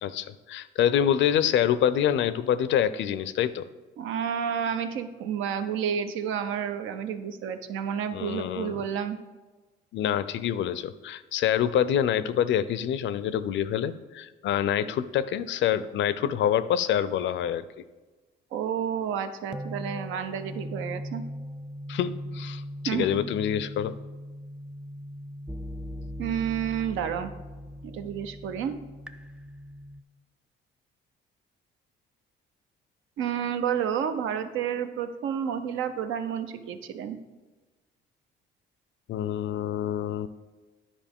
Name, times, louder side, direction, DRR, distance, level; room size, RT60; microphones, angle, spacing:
voice 1, 0.0-3.7 8.1-8.8 9.9-17.8 21.9-23.9 39.1-40.3, left 10 dB, 70° left, 15 dB, 0.4 m, -26 dB
voice 2, 4.0-9.2 18.5-21.2 22.9-23.2 26.2-27.3 27.8-28.8 33.2-37.2, right 8 dB, 90° right, 9 dB, 0.6 m, -30 dB
sound 1, 19.5-30.0, equal, 5° right, 0.3 m, -39 dB
10.0 x 4.9 x 3.6 m, 1.3 s
cardioid pair, 90°, 20 cm